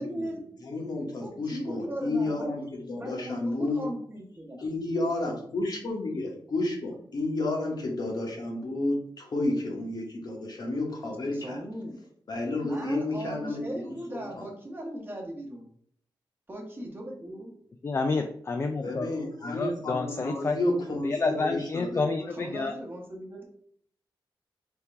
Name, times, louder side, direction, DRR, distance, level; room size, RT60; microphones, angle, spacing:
voice 1, 0.0-0.4 1.2-4.6 11.3-12.0 12.6-15.7 16.5-17.5 22.3-23.4, right 1 dB, 25° right, -1 dB, 1.1 m, -38 dB
voice 2, 0.6-3.9 4.6-11.6 12.3-14.5 18.8-22.2, left 2 dB, 50° left, 0 dB, 1.1 m, -31 dB
voice 3, 17.8-19.1 19.4-20.6 21.0-22.7, left 3 dB, 30° left, 5 dB, 0.3 m, -29 dB
3.6 x 2.9 x 4.4 m, 0.64 s
wide cardioid pair, 140°, 9 cm